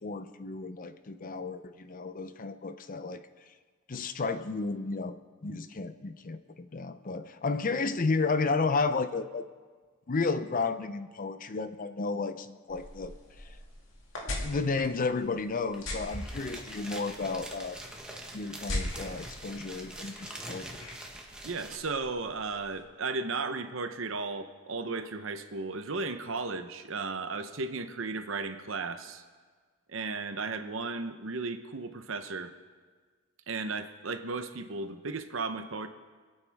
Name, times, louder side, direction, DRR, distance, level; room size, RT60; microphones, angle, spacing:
voice 1, 0.0-3.2 3.9-5.2 5.4-9.4 10.1-13.1 14.2-17.8 18.3-20.8, left 4 dB, 40° left, 11 dB, 0.6 m, -32 dB
sound 1, 12.7-22.8, left 1 dB, 65° left, 2.2 m, -42 dB
sound 2, 15.7-15.8 16.0-21.8, right 1 dB, 5° right, 1.3 m, -43 dB
voice 2, 21.4-29.2 29.9-32.5 33.5-35.9, right 3 dB, 65° right, 9 dB, 0.9 m, -35 dB
25.5 x 8.9 x 3.5 m, 1.5 s
head